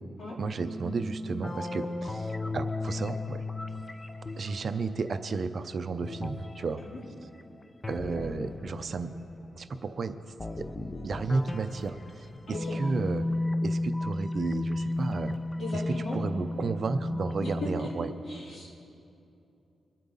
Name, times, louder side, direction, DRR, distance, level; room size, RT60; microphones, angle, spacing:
voice 1, 0.4-3.4 4.4-6.8 7.9-9.1 9.5-10.2 10.6-10.7 11.0-13.3 13.6-15.3 15.7-18.1, right 4 dB, 45° right, 9 dB, 0.5 m, -33 dB
sound 1, 0.6-5.4 6.0-9.8 10.4-18.1, left 2 dB, 20° left, 0.6 m, -34 dB
voice 2, 12.5-12.8 15.6-16.2 17.4-17.9 18.3-18.9, left 2 dB, 55° left, -5 dB, 3.8 m, -37 dB
24.0 x 8.6 x 4.1 m, 2.7 s
wide cardioid pair, 130°, 0 cm